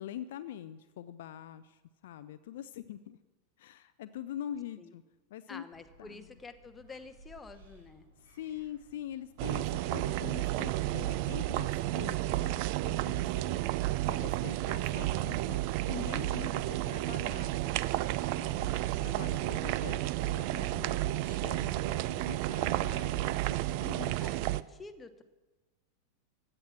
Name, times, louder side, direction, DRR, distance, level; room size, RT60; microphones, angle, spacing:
voice 1, 0.0-3.2 3.6-5.0 5.3-5.6 6.0-6.3 8.2-13.8 14.1-17.6 18.4-24.2, left 11 dB, 55° left, 12 dB, 0.4 m, -44 dB
voice 2, 5.5-8.1 13.1-13.8 24.0-25.2, left 4 dB, 15° left, 9 dB, 0.9 m, -49 dB
sound 1, 5.7-22.9, right 2 dB, 65° right, 2.5 m, -58 dB
sound 2, 9.4-24.6, right 16 dB, 45° right, 0.4 m, -32 dB
15.5 x 8.9 x 6.0 m, 1.2 s
figure-of-eight pair, 90°, 0 cm